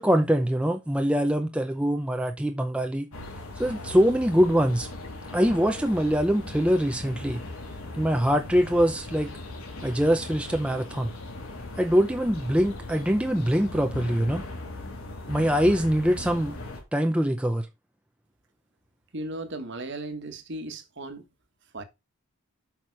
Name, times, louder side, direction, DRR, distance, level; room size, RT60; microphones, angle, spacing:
voice 1, 0.0-3.1 3.6-4.9 5.3-7.4 8.0-9.3 9.8-11.1 11.8-14.4 15.3-16.6 16.9-17.7, equal, 5° right, 0.6 m, -23 dB
sound 1, 3.1-16.8, left 2 dB, 75° left, 2.9 m, -39 dB
voice 2, 19.1-21.2 21.7-21.8, right 2 dB, 50° right, 1.5 m, -36 dB
8.6 x 5.9 x 4.7 m
head